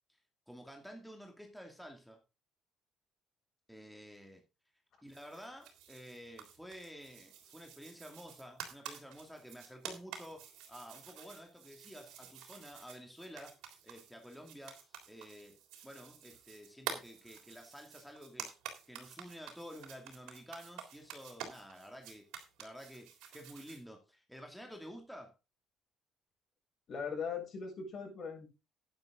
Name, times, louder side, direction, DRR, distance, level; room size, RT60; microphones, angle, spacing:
voice 1, 0.5-2.2 3.7-4.4 5.0-15.6 15.8-18.5 18.9-22.3 22.6-25.3, equal, ahead, 2 dB, 2.5 m, -51 dB
sound 1, 5.1-23.8, right 9 dB, 85° right, 3.5 m, -50 dB
voice 2, 26.9-28.5, left 6 dB, 55° left, 1 dB, 7.3 m, -39 dB
10.5 x 10.5 x 3.8 m, 0.27 s
supercardioid pair, 80°, 0 cm